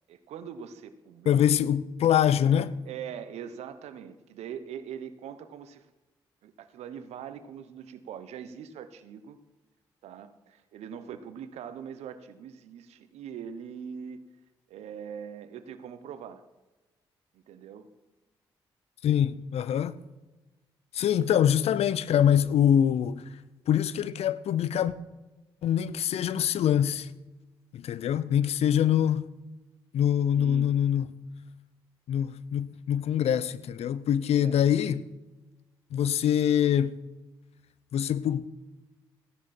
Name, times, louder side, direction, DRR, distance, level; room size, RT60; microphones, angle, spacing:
voice 1, 0.1-1.5 2.8-5.9 6.4-9.4 10.0-14.2 14.7-16.4 17.3-17.9 30.3-30.8 34.3-34.6, right 8 dB, 75° right, 1.0 m, -42 dB
voice 2, 1.3-2.8 19.0-20.0 20.9-23.2 23.7-24.9 25.6-27.1 27.7-29.3 29.9-31.1 32.1-35.1 35.9-37.0 37.9-38.5, left 9 dB, 70° left, 0.7 m, -24 dB
15.5 x 11.0 x 4.4 m
hypercardioid pair, 40°, 11 cm